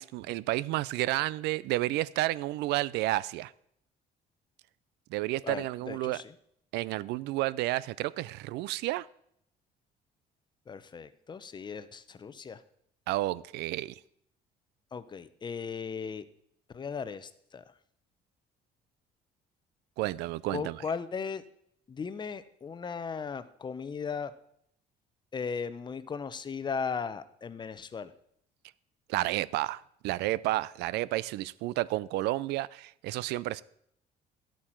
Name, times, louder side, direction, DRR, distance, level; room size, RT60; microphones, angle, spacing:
voice 1, 0.0-3.5 5.1-6.2 6.7-9.1 13.1-13.9 20.0-20.8 29.1-33.6, right 17 dB, 85° right, 0.4 m, -31 dB
voice 2, 5.4-6.2 10.7-12.6 14.9-16.2 16.7-17.6 20.5-21.4 21.9-24.3 25.3-28.1, left 5 dB, 25° left, 0.7 m, -37 dB
11.5 x 8.6 x 4.5 m
cardioid pair, 110°, 17 cm